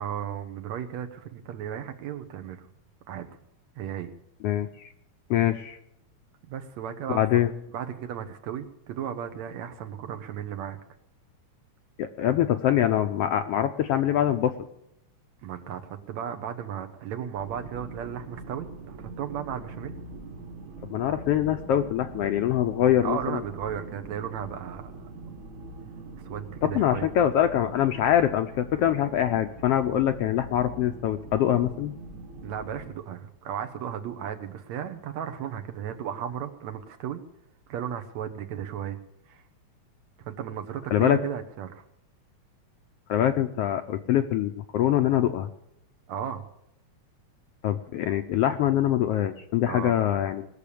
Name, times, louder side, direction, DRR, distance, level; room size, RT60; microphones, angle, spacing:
voice 1, 0.0-2.7 3.1-3.3 3.8-4.1 6.4-7.2 7.7-10.8 15.4-20.0 23.0-25.1 26.1-27.1 32.4-37.2 37.7-39.0 39.3-39.4 40.2-41.8 46.1-46.5 49.7-50.0, right 9 dB, 70° right, 7 dB, 2.4 m, -35 dB
voice 2, 4.4-4.9 5.3-5.8 7.1-7.5 12.0-14.7 20.9-23.4 26.6-31.9 40.9-41.2 43.1-45.5 47.6-50.5, left 11 dB, 75° left, 8 dB, 1.4 m, -24 dB
sound 1, 17.3-33.0, right 2 dB, 55° right, 0.9 m, -43 dB
20.0 x 6.9 x 8.5 m, 0.80 s
omnidirectional pair, 3.3 m